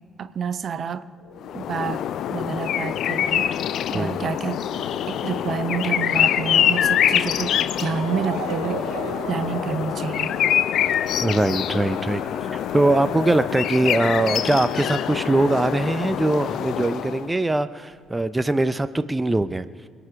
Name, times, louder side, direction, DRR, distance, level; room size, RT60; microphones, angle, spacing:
voice 1, 0.2-1.1 1.5-3.5 3.9-4.6 5.1-7.5 7.8-9.0 9.3-10.4, right 6 dB, 50° right, 12 dB, 0.7 m, -29 dB
sound 1, 1.1-16.1 16.5-16.6, left 2 dB, 80° left, 2.9 m, -46 dB
sound 2, 1.4-17.3, left 10 dB, 60° left, 0.4 m, -25 dB
Motor vehicle (road) / Siren, 2.6-15.6 15.9-17.1 17.7-17.8 18.1-18.2, right 6 dB, 80° right, 1.3 m, -40 dB
voice 2, 11.2-12.2 12.5-19.6, right 2 dB, 15° right, 12 dB, 0.7 m, -22 dB
26.5 x 9.0 x 4.9 m, 2.1 s
figure-of-eight pair, 45°, 0 cm